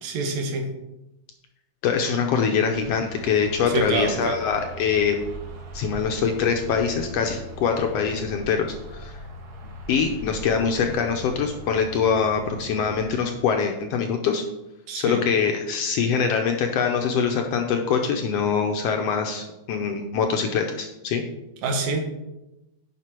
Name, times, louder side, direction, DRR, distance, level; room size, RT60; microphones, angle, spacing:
voice 1, 0.0-0.7 3.7-4.4 14.9-15.3 21.6-22.0, right 3 dB, 75° right, 4 dB, 2.3 m, -26 dB
voice 2, 1.8-5.2 5.7-9.1 9.9-14.4 14.9-21.2, left 6 dB, 75° left, 4 dB, 1.6 m, -24 dB
sound 1, 2.7-13.1, right 1 dB, 60° right, 1.0 m, -40 dB
9.5 x 5.8 x 4.4 m, 0.95 s
omnidirectional pair, 3.3 m